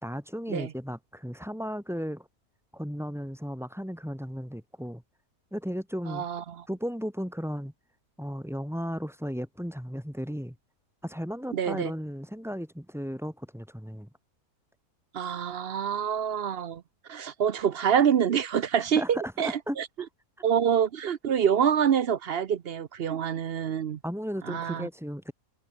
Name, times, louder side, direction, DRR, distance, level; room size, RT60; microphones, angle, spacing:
voice 1, 0.0-2.3 2.7-5.0 5.5-6.3 6.7-7.7 8.2-10.5 11.0-14.1 18.9-20.1 24.0-25.3, equal, ahead, 4.9 m, -35 dB
voice 2, 6.1-6.4 11.5-11.9 15.1-16.8 17.1-19.5 19.8-19.9 20.4-24.0 24.5-24.9, right 8 dB, 55° right, 0.7 m, -26 dB
omnidirectional pair, 1.6 m